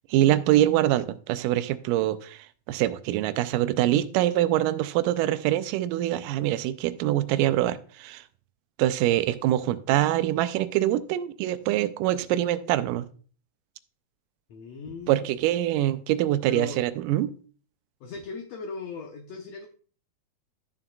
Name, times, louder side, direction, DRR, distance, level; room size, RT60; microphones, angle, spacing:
voice 1, 0.1-8.2 8.8-13.1 15.1-17.3, right 13 dB, 85° right, 13 dB, 2.2 m, -24 dB
voice 2, 14.5-15.3 16.5-16.8 18.0-19.7, left 4 dB, 70° left, 3 dB, 1.7 m, -38 dB
12.5 x 7.2 x 2.3 m, 0.42 s
omnidirectional pair, 3.7 m